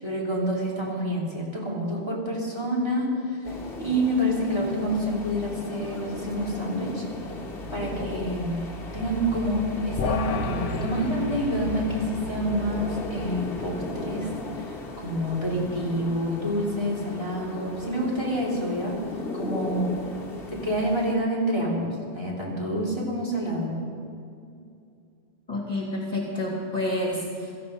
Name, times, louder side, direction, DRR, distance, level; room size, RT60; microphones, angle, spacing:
voice 1, 0.0-3.2 3.8-7.0 7.7-8.6 8.9-14.3 14.6-19.0 19.3-20.0 20.5-23.8, equal, 25° right, -4 dB, 3.2 m, -28 dB
sound 1, 3.4-21.1, left 2 dB, 55° left, 1.5 m, -36 dB
sound 2, 10.0-15.5, left 3 dB, 85° left, 1.2 m, -35 dB
voice 2, 25.5-27.5, left 1 dB, 35° left, -2 dB, 2.4 m, -29 dB
16.5 x 14.5 x 5.1 m, 2.5 s
omnidirectional pair, 1.2 m